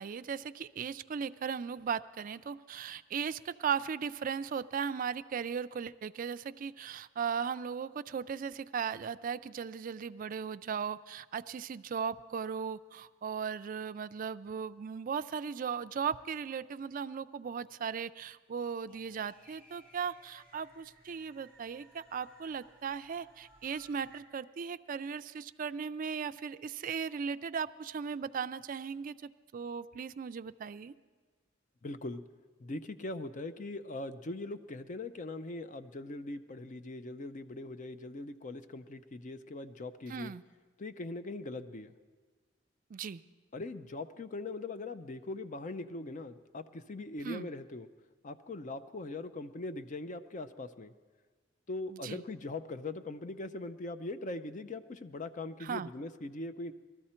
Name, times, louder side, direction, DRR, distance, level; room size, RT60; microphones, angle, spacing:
voice 1, 0.0-30.9 40.1-40.4 42.9-43.2 47.2-47.5 51.9-52.2 55.6-55.9, right 6 dB, 45° right, 14 dB, 0.3 m, -37 dB
sound 1, 18.9-24.2, right 1 dB, 5° left, 1.9 m, -61 dB
voice 2, 31.8-32.2 32.6-40.3 40.8-41.9 43.5-47.9 48.2-50.9 51.7-56.7, left 2 dB, 40° left, 11 dB, 0.5 m, -41 dB
19.5 x 13.5 x 4.3 m, 1.4 s
head